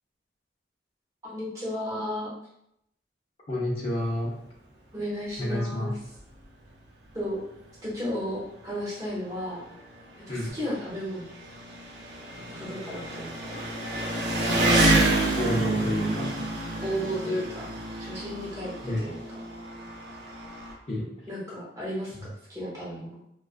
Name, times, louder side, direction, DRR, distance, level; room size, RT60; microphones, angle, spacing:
voice 1, 1.2-2.3 4.9-5.9 7.1-7.4 7.8-9.6 10.3-11.2 12.5-13.6 16.8-17.7 18.0-19.2 21.3-23.2, equal, 20° right, -7 dB, 0.8 m, -33 dB
voice 2, 3.5-4.4 5.4-5.9 10.3-10.6 15.4-16.3 18.8-19.1 20.9-21.2 22.1-22.3, equal, 35° left, -6 dB, 0.5 m, -29 dB
Engine, 6.2-6.3 6.6-6.7 7.7-7.8 8.0-20.7, right 2 dB, 60° right, 0.5 m, -29 dB
2.3 x 2.2 x 2.4 m, 0.77 s
head